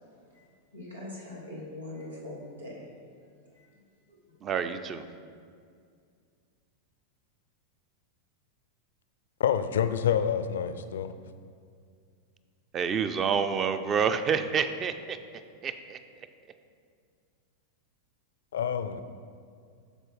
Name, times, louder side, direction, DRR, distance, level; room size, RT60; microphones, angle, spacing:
voice 1, 0.7-2.9 3.6-3.7 4.1-4.2, left 1 dB, 80° right, 1.7 m, -42 dB
voice 2, 4.4-5.1 12.7-15.2 15.6-16.0, right 6 dB, 25° right, 0.4 m, -28 dB
voice 3, 9.4-11.1 18.5-19.0, left 8 dB, 60° left, 0.4 m, -27 dB
12.5 x 4.5 x 3.2 m
figure-of-eight pair, 90°, 0 cm